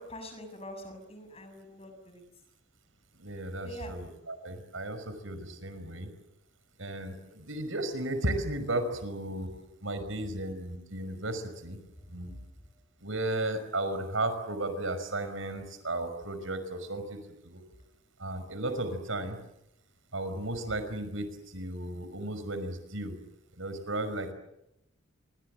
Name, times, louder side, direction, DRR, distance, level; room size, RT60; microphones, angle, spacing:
voice 1, 0.0-2.2 3.6-3.9 12.2-12.4, equal, 30° left, 6 dB, 7.1 m, -44 dB
voice 2, 3.2-6.1 6.8-9.5 9.8-11.8 12.1-12.4 13.0-17.6 18.2-19.4 20.1-23.2 23.6-24.3, right 1 dB, 75° right, 10 dB, 5.5 m, -34 dB
28.0 x 24.5 x 7.9 m, 0.85 s
head